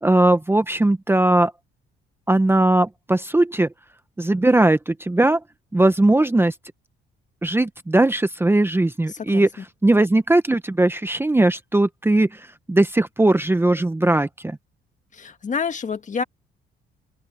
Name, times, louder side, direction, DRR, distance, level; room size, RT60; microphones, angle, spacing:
voice 1, 0.0-1.5 2.3-3.7 4.2-5.4 5.7-6.5 7.4-9.5 9.8-12.3 12.7-14.6, right 2 dB, 10° right, 0.9 m, -19 dB
voice 2, 9.1-9.5 15.1-16.2, left 5 dB, 35° left, 1.6 m, -28 dB
open air
cardioid pair, 105°, 21 cm